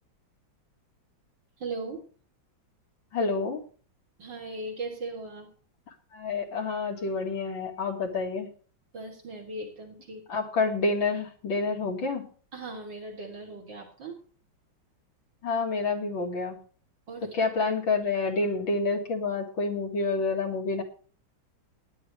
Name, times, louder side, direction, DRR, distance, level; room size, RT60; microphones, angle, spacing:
voice 1, 1.6-2.0 4.2-5.5 8.9-10.5 12.5-14.2 17.1-17.5, right 2 dB, 65° right, -1 dB, 4.0 m, -38 dB
voice 2, 3.1-3.6 6.1-8.5 10.3-12.3 15.4-16.6 17.3-20.8, left 3 dB, 70° left, 2 dB, 2.9 m, -28 dB
17.5 x 11.0 x 3.3 m, 0.40 s
omnidirectional pair, 2.2 m